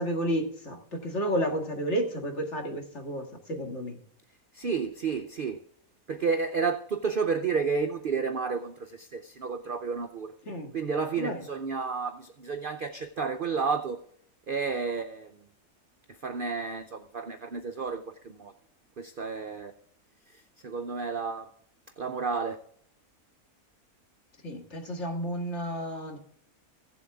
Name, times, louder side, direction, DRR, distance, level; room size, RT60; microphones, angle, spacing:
voice 1, 0.0-4.0 10.4-10.7 11.2-11.4 24.4-26.2, equal, 50° left, 2.1 m, -31 dB
voice 2, 4.5-5.6 6.1-10.3 10.7-14.0 14.5-15.4 16.2-18.5 19.0-19.7 20.6-21.5 22.0-22.6, right 5 dB, 55° right, 0.6 m, -31 dB
15.5 x 7.6 x 3.5 m
omnidirectional pair, 1.6 m